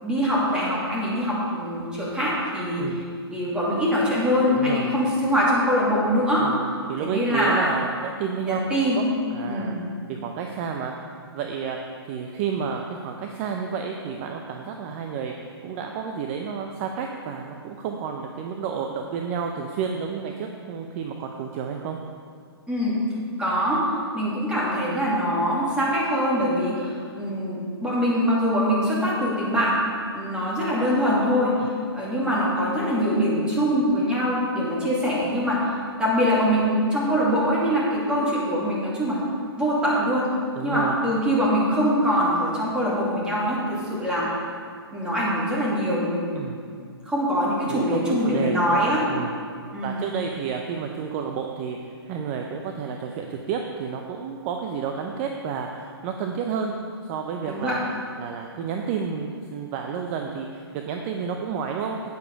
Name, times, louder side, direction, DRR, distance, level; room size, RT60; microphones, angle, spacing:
voice 1, 0.0-2.8 3.3-6.7 7.0-7.7 8.4-9.0 9.5-9.8 22.7-23.0 23.4-23.8 24.1-29.8 30.1-39.2 39.6-40.3 40.6-44.3 44.9-46.2 47.1-49.0 49.7-50.0 57.4-57.8, equal, 5° right, -7 dB, 2.8 m, -23 dB
voice 2, 2.8-3.1 4.5-4.9 6.4-8.6 8.9-9.8 10.1-10.9 11.3-11.8 12.0-15.3 15.6-22.0 40.5-41.0 46.3-46.6 47.7-49.4 49.8-57.8 58.2-62.1, right 6 dB, 30° right, 3 dB, 0.7 m, -31 dB
10.0 x 9.5 x 4.8 m, 2.1 s
hypercardioid pair, 135°, 14 cm